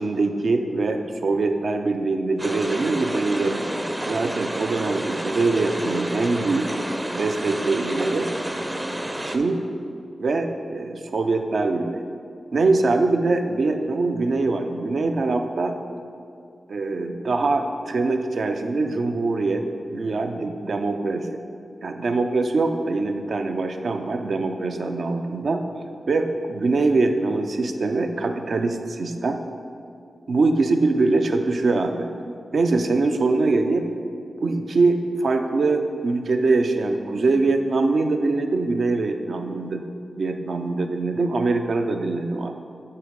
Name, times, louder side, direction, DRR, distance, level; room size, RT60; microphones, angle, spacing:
voice 1, 0.0-3.6 4.0-6.7 7.1-8.3 9.2-9.6 10.2-12.0 12.5-15.7 16.7-21.4 21.8-25.6 26.1-29.4 30.3-32.1 32.5-33.9 34.4-39.8 40.2-42.5, right 3 dB, 70° right, 5 dB, 0.5 m, -23 dB
sound 1, 2.4-9.4, right 1 dB, 20° right, 0.5 m, -30 dB
8.3 x 3.8 x 5.1 m, 2.4 s
cardioid pair, 65°, 0 cm